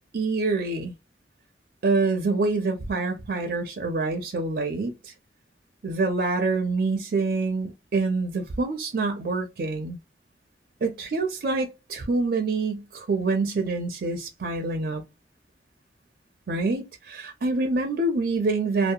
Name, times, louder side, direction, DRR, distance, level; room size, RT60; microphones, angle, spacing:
voice 1, 0.1-0.9 1.8-5.1 5.8-10.0 10.8-15.0 16.5-18.9, right 3 dB, 60° right, 0.4 m, -26 dB
2.7 x 2.0 x 2.3 m
head